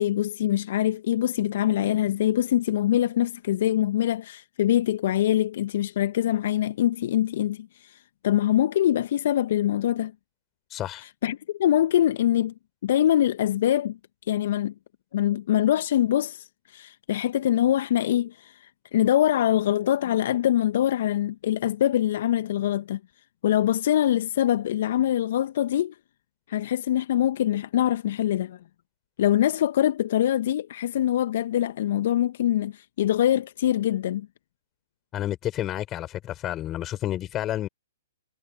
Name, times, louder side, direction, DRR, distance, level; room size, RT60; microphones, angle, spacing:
voice 1, 0.0-10.1 10.9-12.5 12.8-14.0 14.3-14.7 15.1-23.0 23.4-26.0 26.5-28.6 29.2-34.3, left 12 dB, 55° left, 1.3 m, -24 dB
voice 2, 10.7-11.0 35.1-37.7, left 13 dB, 25° left, 6.1 m, -30 dB
figure-of-eight pair, 120°, 0 cm